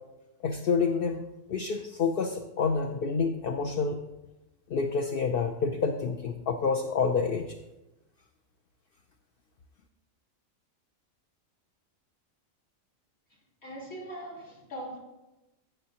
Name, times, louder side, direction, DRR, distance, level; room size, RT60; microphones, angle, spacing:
voice 1, 0.4-1.2 1.5-4.0 4.7-7.6, left 5 dB, 55° left, 4 dB, 0.7 m, -28 dB
voice 2, 13.6-15.0, right 1 dB, 80° left, -6 dB, 3.7 m, -40 dB
15.5 x 6.5 x 2.9 m, 0.99 s
omnidirectional pair, 1.4 m